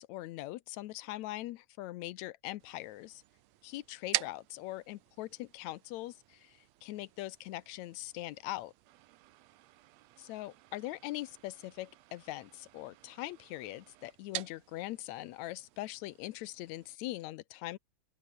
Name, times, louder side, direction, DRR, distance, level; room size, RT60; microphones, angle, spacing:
voice 1, 0.0-3.2 3.6-8.7 10.3-17.8, left 16 dB, 80° left, 2.0 m, -42 dB
sound 1, 2.6-17.0, right 15 dB, 70° right, 1.9 m, -46 dB
open air
omnidirectional pair, 3.4 m